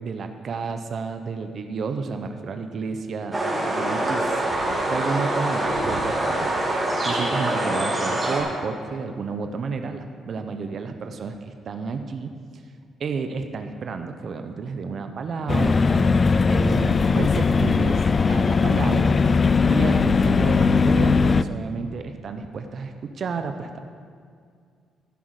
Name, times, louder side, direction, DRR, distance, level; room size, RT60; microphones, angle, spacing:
voice 1, 0.0-4.4 4.8-12.3 13.0-16.2 16.5-18.0 18.3-19.1 19.7-23.8, right 5 dB, 55° right, 7 dB, 0.7 m, -31 dB
sound 1, 3.3-8.4, right 1 dB, 25° right, 2.8 m, -24 dB
sound 2, 15.5-21.4, left 4 dB, 35° left, 0.3 m, -19 dB
15.0 x 6.3 x 4.8 m, 2.1 s
cardioid pair, 90°, 0 cm